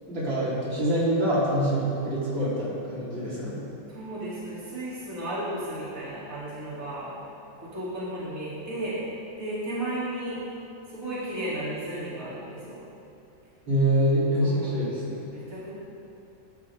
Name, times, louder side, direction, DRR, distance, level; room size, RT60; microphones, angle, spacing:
voice 1, 0.1-3.6 13.7-15.3, right 1 dB, 70° right, -9 dB, 5.2 m, -25 dB
voice 2, 3.9-7.1 7.6-9.0 9.4-10.4 10.9-12.8 14.4-14.7 15.3-15.7, right 1 dB, 40° right, -9 dB, 4.3 m, -34 dB
24.0 x 13.0 x 3.9 m, 2.7 s
omnidirectional pair, 2.1 m